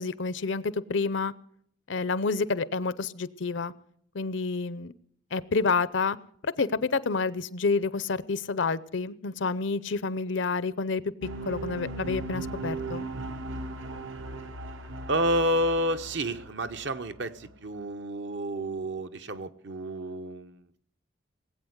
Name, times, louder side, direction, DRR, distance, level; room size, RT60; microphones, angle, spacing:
voice 1, 0.0-1.3 1.9-3.7 4.1-4.9 5.3-6.2 6.4-11.1 11.4-13.1, left 4 dB, 65° left, 17 dB, 0.6 m, -29 dB
sound 1, 11.2-17.5, right 2 dB, 75° right, 1.4 m, -38 dB
voice 2, 15.1-20.8, equal, 60° right, 9 dB, 0.9 m, -30 dB
19.0 x 8.6 x 8.0 m, 0.64 s
head